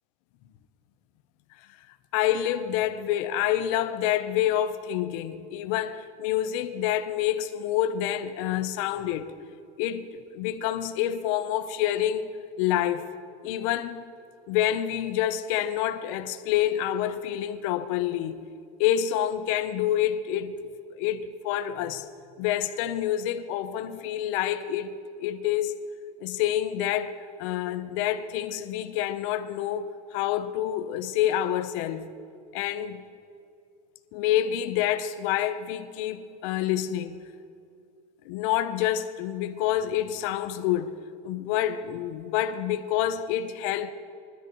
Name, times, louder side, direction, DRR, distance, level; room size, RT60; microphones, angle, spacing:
voice 1, 2.1-9.3 9.8-12.3 12.6-13.0 13.4-14.1 14.5-18.5 18.8-20.6 21.0-22.1 22.4-24.9 25.2-25.7 26.2-27.1 27.4-32.1 32.5-33.0 34.1-37.2 38.2-41.0 41.2-43.9, left 11 dB, 55° left, 0.8 m, -27 dB
20.5 x 12.5 x 3.1 m
cardioid pair, 170°, 20 cm